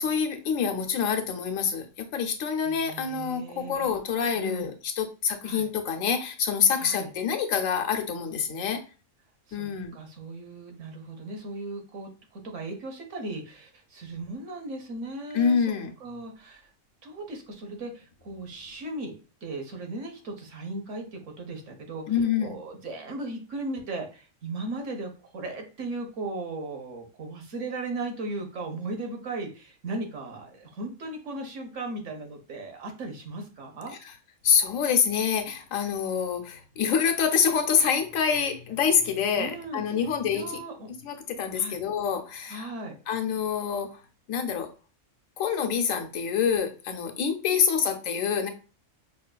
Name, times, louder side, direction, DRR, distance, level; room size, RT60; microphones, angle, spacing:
voice 1, 0.0-8.8 9.5-10.0 15.3-15.9 22.1-22.6 34.4-40.6 41.0-42.7 43.1-44.0 44.3-44.7 45.4-48.5, left 7 dB, 90° left, 5 dB, 1.1 m, -26 dB
voice 2, 2.6-3.9 4.4-4.7 5.4-5.7 6.8-7.1 9.5-15.7 16.0-16.7 17.0-22.0 22.4-34.0 39.4-39.9 40.3-40.9 41.5-41.8 42.5-43.0 47.5-47.9, right 2 dB, 70° right, 3 dB, 1.2 m, -37 dB
5.1 x 2.4 x 2.2 m, 0.35 s
omnidirectional pair, 1.3 m